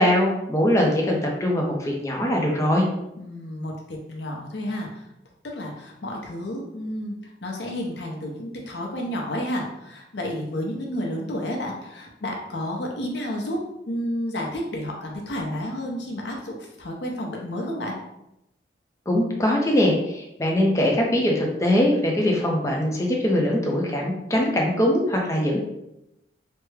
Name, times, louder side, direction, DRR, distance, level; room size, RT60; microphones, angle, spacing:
voice 1, 0.0-2.9 19.1-25.6, left 1 dB, 15° left, -1 dB, 0.6 m, -22 dB
voice 2, 3.2-5.1 5.4-13.6 13.9-17.9, equal, 70° left, 0 dB, 0.7 m, -31 dB
3.3 x 2.1 x 3.2 m, 0.86 s
head